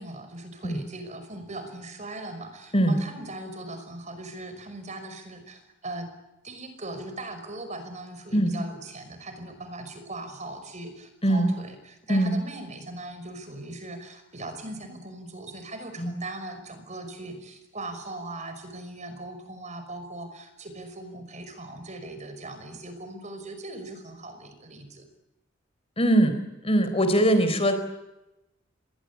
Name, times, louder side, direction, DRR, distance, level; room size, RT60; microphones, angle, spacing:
voice 1, 0.0-6.1 6.4-25.0, right 2 dB, 35° right, 9 dB, 5.5 m, -39 dB
voice 2, 26.0-26.4 26.6-27.7, right 1 dB, 30° left, 9 dB, 4.1 m, -21 dB
28.0 x 22.0 x 8.5 m, 0.96 s
head